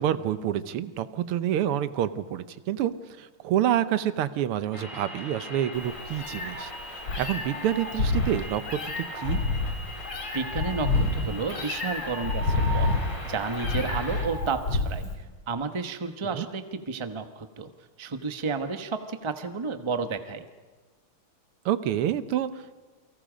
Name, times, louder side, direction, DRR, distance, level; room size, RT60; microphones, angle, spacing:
voice 1, 0.0-2.9 3.2-9.4 16.3-16.5 21.7-22.8, right 11 dB, 85° right, 13 dB, 1.8 m, -28 dB
sound 1, 4.7-14.3, left 1 dB, 15° left, 3.8 m, -40 dB
Meow, 5.8-15.1, left 3 dB, 90° left, 4.0 m, -28 dB
voice 2, 10.0-12.9 13.2-15.0 15.5-17.7 18.0-20.5, right 4 dB, 20° right, 8 dB, 0.7 m, -32 dB
29.0 x 24.0 x 5.1 m, 1.3 s
omnidirectional pair, 2.4 m